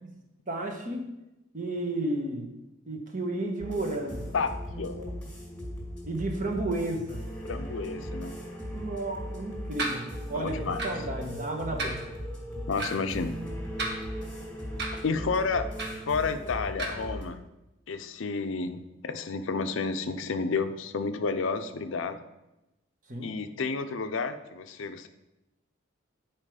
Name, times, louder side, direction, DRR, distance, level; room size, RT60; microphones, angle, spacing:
voice 1, 0.5-1.1 1.5-2.5 2.9-4.3 4.7-5.1 6.1-7.2 8.6-12.1 23.1-23.3, right 2 dB, 40° right, 2 dB, 1.2 m, -33 dB
sound 1, 3.6-17.2, equal, 5° left, 2.2 m, -38 dB
voice 2, 4.3-5.0 7.4-8.3 10.3-10.8 12.7-13.4 15.0-15.7 16.1-17.4 17.9-22.2 23.2-25.1, left 4 dB, 75° left, 9 dB, 0.5 m, -31 dB
sound 2, 9.8-10.0 10.8-11.0 11.8-12.0 12.8-12.9 13.7-14.3 14.8-15.0 15.8-16.0 16.8-16.9, right 2 dB, 60° right, 1.5 m, -32 dB
9.9 x 4.5 x 4.9 m, 0.97 s
head